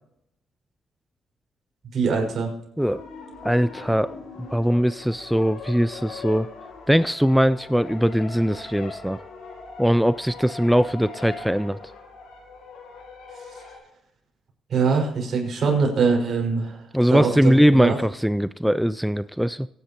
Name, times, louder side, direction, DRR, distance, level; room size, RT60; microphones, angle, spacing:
voice 1, 1.9-2.5 13.5-13.6 14.7-18.0, right 5 dB, 55° right, 0 dB, 5.3 m, -23 dB
sound 1, 2.8-13.8, left 4 dB, 90° left, 5.7 m, -41 dB
voice 2, 3.4-4.2 4.5-6.5 6.9-9.2 9.8-11.8 16.9-19.7, equal, ahead, 15 dB, 0.4 m, -21 dB
24.0 x 10.0 x 3.0 m, 0.81 s
cardioid pair, 90°, 0 cm